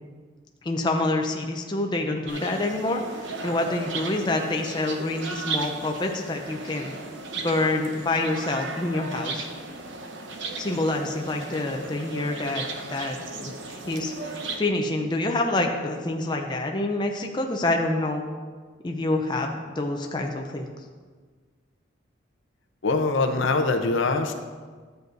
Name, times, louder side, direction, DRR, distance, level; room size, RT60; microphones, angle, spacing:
voice 1, 0.6-3.0 3.4-6.9 7.4-9.5 10.6-18.2 18.8-20.7, left 2 dB, 25° left, 2 dB, 0.5 m, -27 dB
sound 1, 2.3-14.6, right 3 dB, 70° right, 0.8 m, -36 dB
voice 2, 22.8-24.4, left 3 dB, 75° left, 5 dB, 0.7 m, -23 dB
11.5 x 7.9 x 2.6 m, 1.5 s
head